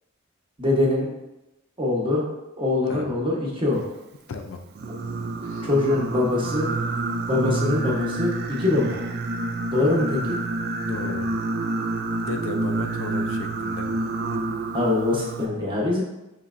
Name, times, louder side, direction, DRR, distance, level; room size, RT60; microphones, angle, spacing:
voice 1, 0.6-1.1 1.8-2.2 2.6-3.8 5.6-6.7 7.3-9.0 9.7-10.4 14.7-16.0, left 2 dB, 25° right, -3 dB, 0.9 m, -23 dB
voice 2, 4.3-4.6 5.4-5.7 10.8-11.3 12.2-13.9, left 4 dB, 75° left, 5 dB, 0.4 m, -34 dB
Singing, 4.8-15.5, right 2 dB, 50° right, 0.4 m, -28 dB
5.7 x 3.1 x 2.4 m, 0.96 s
head